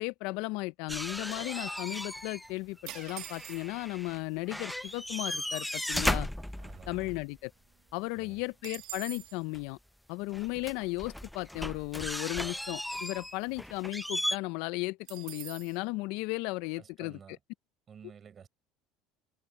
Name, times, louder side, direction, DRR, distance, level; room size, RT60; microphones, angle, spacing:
voice 1, 0.0-6.3 6.9-7.5 7.9-9.8 10.1-17.2, left 23 dB, 70° left, 0.7 m, -35 dB
sound 1, 0.9-2.5 2.8-4.2 4.5-7.2 9.5-9.6 10.3-14.4, left 1 dB, 5° left, 0.8 m, -36 dB
sound 2, 2.9-3.9 4.7-4.8 5.0-5.4 5.8-7.3 7.6-7.7 8.0-9.4 15.1-15.8, right 17 dB, 65° right, 2.0 m, -46 dB
voice 2, 6.6-7.2 8.1-8.4 16.7-17.4 17.9-18.5, right 7 dB, 35° right, 4.6 m, -52 dB
supercardioid pair, 90°, 0 cm